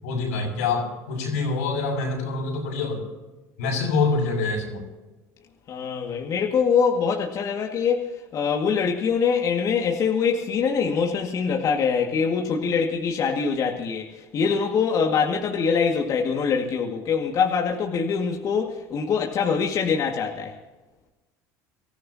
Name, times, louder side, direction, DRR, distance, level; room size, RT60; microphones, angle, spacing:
voice 1, 0.0-3.0 3.6-4.8, left 4 dB, 90° left, 0 dB, 6.6 m, -25 dB
voice 2, 5.7-20.5, left 6 dB, 45° left, 1 dB, 2.1 m, -24 dB
24.5 x 15.0 x 2.9 m, 1.1 s
supercardioid pair, 90°, 8 cm